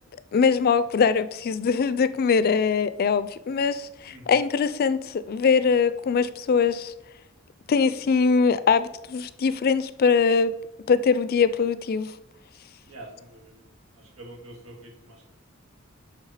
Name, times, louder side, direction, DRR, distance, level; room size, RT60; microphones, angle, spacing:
voice 1, 0.3-6.9 7.7-10.5 10.9-12.1, left 5 dB, 50° left, 0.4 m, -22 dB
voice 2, 4.0-4.4 12.8-13.7 14.0-15.3, right 1 dB, 90° right, 2.0 m, -46 dB
10.0 x 3.6 x 4.9 m
head